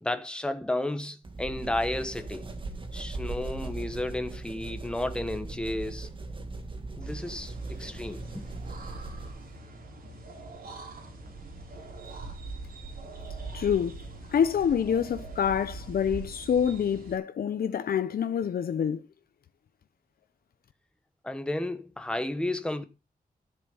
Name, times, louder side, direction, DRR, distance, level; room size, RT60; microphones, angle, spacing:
voice 1, 0.0-2.4 2.9-6.1 7.0-8.4 21.2-22.8, left 1 dB, 5° left, 1.1 m, -32 dB
sound 1, 1.2-9.5, right 2 dB, 35° right, 2.0 m, -39 dB
sound 2, 7.0-17.2, right 3 dB, 80° right, 4.4 m, -43 dB
voice 2, 13.5-14.0 14.3-19.0, left 8 dB, 80° left, 0.7 m, -26 dB
13.0 x 7.4 x 5.6 m
wide cardioid pair, 175°, 15 cm